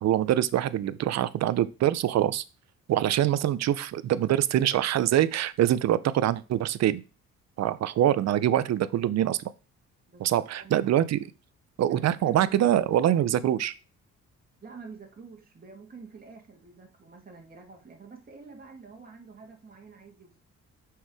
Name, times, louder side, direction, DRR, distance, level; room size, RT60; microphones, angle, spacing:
voice 1, 0.0-2.4 2.9-7.0 7.6-9.4 10.2-11.3 11.8-13.7, right 12 dB, 60° right, 16 dB, 0.6 m, -24 dB
voice 2, 10.1-10.7 11.9-12.8 14.6-20.4, right 4 dB, 30° right, 0 dB, 2.1 m, -48 dB
6.1 x 4.7 x 4.8 m, 0.31 s
cardioid pair, 90°, 30 cm